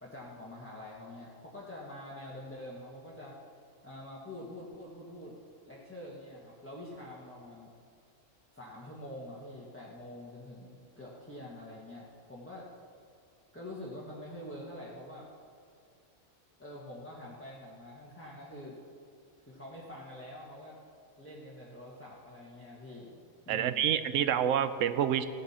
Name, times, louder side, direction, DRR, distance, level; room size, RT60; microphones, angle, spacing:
voice 1, 0.0-3.3 3.8-5.3 5.7-7.7 8.5-12.7 13.5-15.3 16.6-18.8 19.5-20.8 21.2-23.1 23.4-23.9, left 1 dB, 10° left, -6 dB, 1.5 m, -46 dB
voice 2, 23.5-25.3, right 9 dB, 80° right, 12 dB, 1.0 m, -28 dB
16.5 x 11.0 x 4.4 m, 2.3 s
omnidirectional pair, 1.3 m